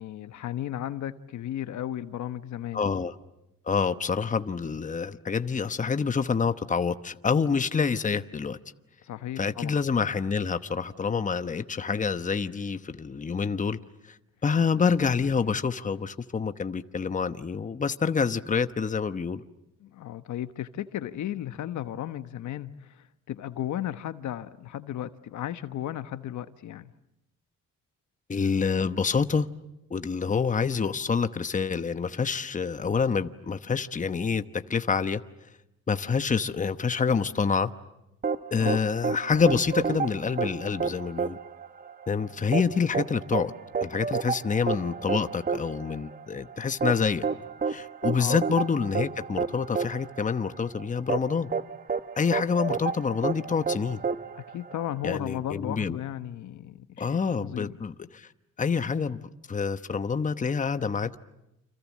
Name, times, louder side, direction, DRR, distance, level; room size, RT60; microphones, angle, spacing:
voice 1, 0.0-2.9 9.0-9.8 19.8-26.9 38.6-38.8 48.1-48.4 54.5-57.7, left 11 dB, 70° left, 1.2 m, -35 dB
voice 2, 2.7-3.1 3.7-8.6 9.4-13.8 14.4-19.4 28.3-29.5 29.9-35.2 35.9-37.7 38.5-41.4 42.1-43.5 43.8-47.3 47.7-51.5 52.2-54.0 55.0-56.0 57.0-58.3 58.6-59.2 59.5-61.2, left 5 dB, 25° left, 1.1 m, -27 dB
sound 1, 38.2-55.1, right 5 dB, 30° right, 1.1 m, -31 dB
29.5 x 26.5 x 7.5 m
cardioid pair, 90°, 30 cm